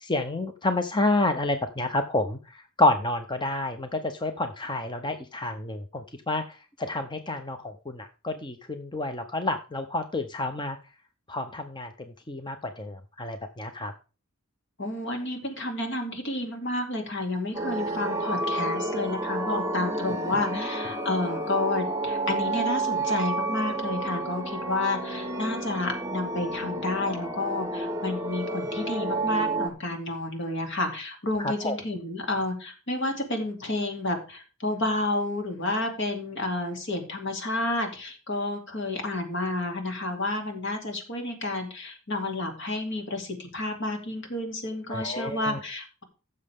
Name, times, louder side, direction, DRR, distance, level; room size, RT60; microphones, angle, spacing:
voice 1, 0.0-2.4 2.8-6.4 6.9-10.8 11.3-11.9 12.3-13.9 31.4-31.8 44.9-45.6, left 2 dB, 20° left, 7 dB, 0.7 m, -29 dB
voice 2, 14.8-46.0, left 2 dB, 60° left, 4 dB, 2.6 m, -30 dB
sound 1, 17.5-29.7, right 2 dB, 15° right, 0.9 m, -30 dB
15.0 x 6.7 x 3.5 m, 0.34 s
head